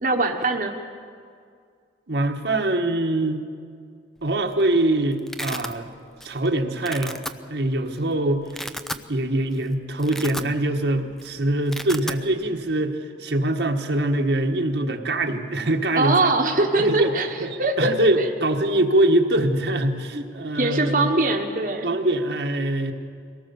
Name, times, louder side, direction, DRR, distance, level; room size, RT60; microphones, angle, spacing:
voice 1, 0.0-0.7 15.9-17.3 17.6-17.9 18.2-18.3 20.1-20.2 20.6-21.9, right 2 dB, 45° right, 2 dB, 1.3 m, -22 dB
voice 2, 2.1-3.4 4.2-5.9 6.2-7.2 7.5-8.6 9.1-16.3 16.8-17.1 17.4-21.1 21.8-22.9, right 1 dB, 70° right, 3 dB, 1.5 m, -23 dB
Domestic sounds home sounds, 4.3-4.6 4.9-5.7 6.2-6.5 6.8-7.3 7.9-8.0 8.4-9.1 9.5-9.6 9.9-10.9 11.1-11.3 11.5-12.2, equal, ahead, 0.5 m, -33 dB
23.0 x 18.0 x 7.1 m, 2.2 s
head